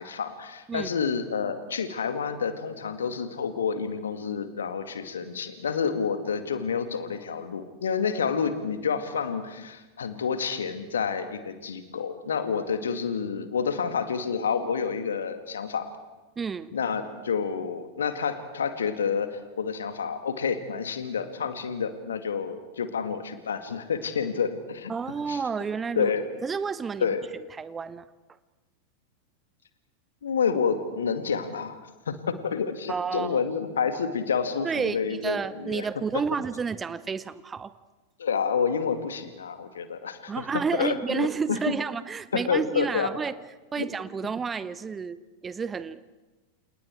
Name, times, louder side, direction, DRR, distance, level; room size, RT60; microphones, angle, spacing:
voice 1, 0.0-15.9 16.7-24.9 25.3-25.4 26.0-26.2 27.0-27.2 30.2-31.8 32.1-35.9 38.2-40.5 40.7-41.6 42.3-43.1 43.8-43.9, left 6 dB, 65° left, 9 dB, 2.2 m, -29 dB
voice 2, 16.4-16.7 24.9-26.1 26.4-27.1 27.5-28.1 32.9-33.4 34.6-37.7 40.3-43.4 43.7-46.0, right 5 dB, 15° right, 16 dB, 0.8 m, -30 dB
29.0 x 29.0 x 4.7 m, 1.1 s
figure-of-eight pair, 90°, 0 cm